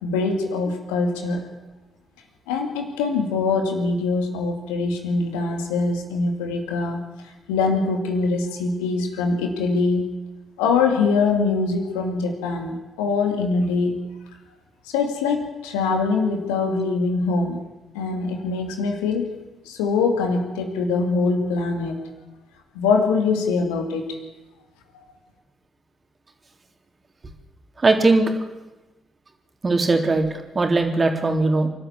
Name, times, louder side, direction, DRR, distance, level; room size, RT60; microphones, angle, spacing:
voice 1, 0.0-1.5 2.5-7.0 7.5-10.1 10.6-14.0 14.9-17.6 17.9-19.3 19.7-22.0 22.7-24.1, left 4 dB, 80° left, 4 dB, 2.6 m, -23 dB
voice 2, 27.8-28.3 29.6-31.7, right 3 dB, 35° right, 4 dB, 3.6 m, -19 dB
27.0 x 12.0 x 8.6 m, 1.1 s
hypercardioid pair, 40°, 0 cm